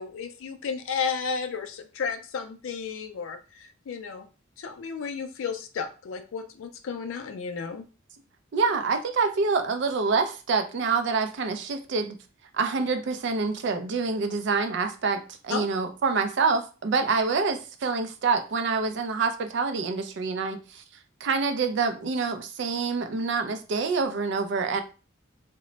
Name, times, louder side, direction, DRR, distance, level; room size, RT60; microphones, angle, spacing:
voice 1, 0.0-4.3 4.6-7.9 15.5-15.7, left 6 dB, 75° left, 0.4 m, -33 dB
voice 2, 8.5-12.2 12.5-20.8 21.2-24.8, right 4 dB, 60° right, 0.4 m, -26 dB
2.1 x 2.0 x 3.7 m
head